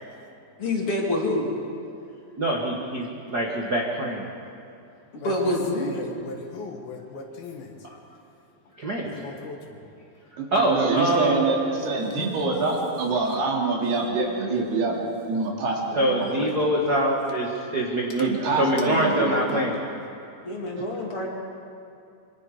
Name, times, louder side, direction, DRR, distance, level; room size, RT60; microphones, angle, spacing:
voice 1, 0.6-1.5 5.1-6.1 20.4-21.3, left 1 dB, 40° left, -2 dB, 3.1 m, -26 dB
voice 2, 2.4-4.3 8.8-9.1 10.5-11.4 15.9-19.8, right 1 dB, 45° right, -2 dB, 1.3 m, -24 dB
voice 3, 5.7-7.7 9.0-9.8, left 3 dB, 70° left, 3 dB, 3.4 m, -39 dB
voice 4, 10.4-15.0 15.3-16.5 18.2-19.3, right 3 dB, 80° right, -1 dB, 4.8 m, -25 dB
26.0 x 24.0 x 5.1 m, 2.6 s
omnidirectional pair, 4.6 m